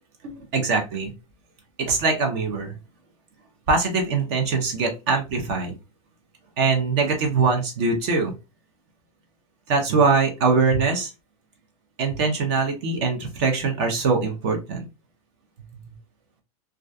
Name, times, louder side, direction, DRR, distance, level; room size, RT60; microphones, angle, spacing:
voice 1, 0.2-1.1 1.8-2.8 3.7-5.7 6.6-8.3 9.7-11.1 12.0-14.8, right 4 dB, 45° right, 3 dB, 0.6 m, -22 dB
2.3 x 2.2 x 2.5 m, 0.27 s
supercardioid pair, 145°, 19 cm